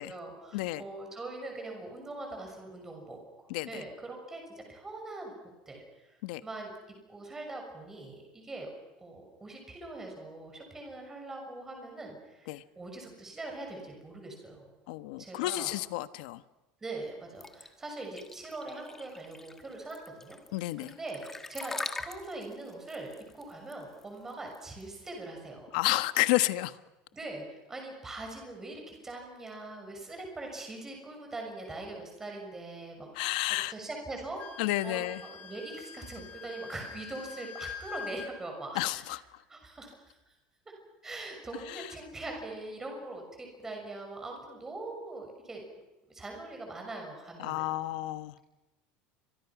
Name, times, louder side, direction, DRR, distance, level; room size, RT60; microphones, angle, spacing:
voice 1, 0.0-3.2 3.7-5.3 5.7-6.7 7.1-8.7 9.0-14.7 15.2-15.7 16.8-20.4 20.8-25.7 27.1-33.3 33.7-34.4 34.8-39.0 39.5-40.3 41.0-45.6 46.1-47.7, right 2 dB, 10° right, 2 dB, 6.5 m, -42 dB
voice 2, 0.5-0.8 3.5-3.8 6.2-6.4 12.5-12.6 14.9-16.4 20.5-20.9 25.7-26.8 33.1-33.7 34.6-35.2 38.7-39.4 41.7-41.9 47.4-48.5, left 17 dB, 75° left, 13 dB, 1.3 m, -31 dB
sound 1, 17.4-25.1, left 3 dB, 10° left, 1.5 m, -42 dB
Wind instrument woodwind instrument, 34.4-38.3, left 7 dB, 35° left, 3.2 m, -44 dB
29.5 x 25.5 x 6.1 m, 1.0 s
cardioid pair, 180°, 4 cm